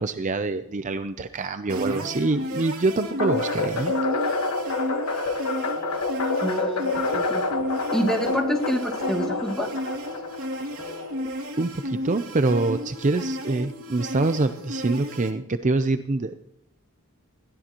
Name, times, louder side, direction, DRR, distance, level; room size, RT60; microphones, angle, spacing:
voice 1, 0.0-3.9 11.6-16.4, right 3 dB, 35° right, 10 dB, 0.5 m, -25 dB
sound 1, 1.7-15.3, equal, 75° right, 2.5 m, -33 dB
sound 2, 3.2-11.5, left 3 dB, 90° left, 1.5 m, -28 dB
voice 2, 6.4-7.4 7.9-9.7, equal, 5° left, 1 dB, 2.5 m, -27 dB
21.0 x 15.0 x 3.0 m, 0.79 s
head